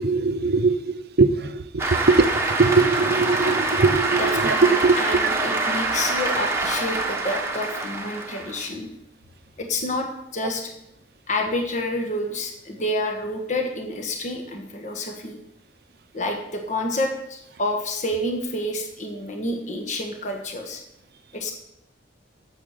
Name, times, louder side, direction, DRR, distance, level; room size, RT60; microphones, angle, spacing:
voice 1, 0.0-4.9, right 4 dB, 55° right, 10 dB, 0.6 m, -21 dB
Cheering / Applause, 1.8-8.6, right 2 dB, 15° right, 1.2 m, -25 dB
voice 2, 4.2-8.9 9.6-10.7 11.3-15.4 16.1-20.8 21.3-21.5, left 1 dB, 40° left, 3 dB, 1.3 m, -28 dB
8.9 x 7.6 x 6.5 m, 0.84 s
head